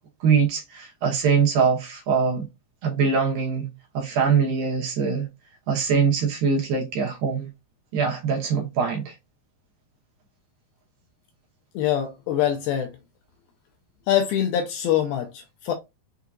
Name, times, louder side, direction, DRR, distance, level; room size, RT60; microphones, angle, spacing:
voice 1, 0.2-2.5 2.8-5.3 5.7-7.5 7.9-9.1, right 6 dB, 70° right, 2.5 m, -23 dB
voice 2, 11.8-12.9 14.1-15.7, left 10 dB, 85° left, 2.3 m, -24 dB
6.7 x 2.8 x 2.4 m
omnidirectional pair, 4.8 m